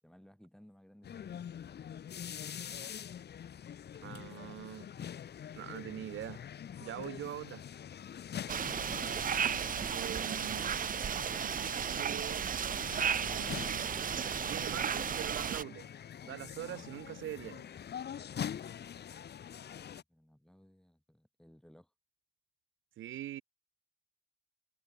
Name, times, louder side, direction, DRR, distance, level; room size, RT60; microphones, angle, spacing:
voice 1, 0.0-1.7 19.7-21.9, equal, 5° left, 7.9 m, -60 dB
sound 1, 1.0-20.0, left 9 dB, 55° left, 2.5 m, -45 dB
voice 2, 4.0-4.9 5.6-6.4 6.8-7.6 9.9-10.7 11.8-12.5 14.2-15.9 16.2-17.7 23.0-23.4, right 13 dB, 80° right, 4.4 m, -43 dB
sound 2, 8.5-15.6, right 8 dB, 45° right, 1.0 m, -34 dB
cardioid pair, 90°, 20 cm